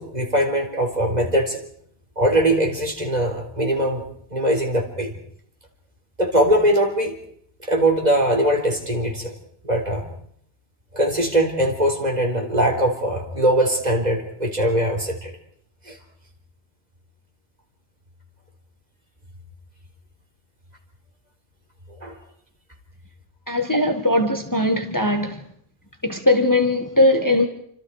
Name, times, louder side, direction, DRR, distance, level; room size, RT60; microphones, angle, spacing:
voice 1, 0.0-1.6 2.2-5.1 6.2-7.2 7.6-9.3 9.6-10.1 10.9-15.3 15.9-16.0 22.0-22.2, right 1 dB, 40° right, 4.1 m, -21 dB
voice 2, 23.5-25.4 26.0-27.5, left 1 dB, 20° left, 1.6 m, -19 dB
29.0 x 25.5 x 4.9 m
omnidirectional pair, 1.1 m